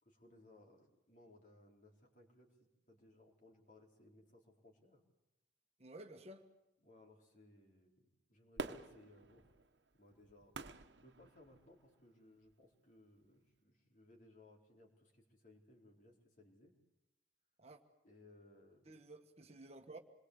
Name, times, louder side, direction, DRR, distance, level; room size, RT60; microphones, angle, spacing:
voice 1, 0.0-2.6 2.9-5.0 6.8-9.5 10.0-10.5 11.0-16.7 18.0-19.0, left 1 dB, 45° left, 1 dB, 4.5 m, -64 dB
voice 2, 5.8-6.5 17.6-17.8 18.8-20.0, right 2 dB, 35° right, 5 dB, 1.5 m, -53 dB
Fireworks, 8.6-11.9 12.5-12.6, right 3 dB, 75° right, 1.3 m, -48 dB
27.5 x 22.0 x 8.2 m, 0.89 s
head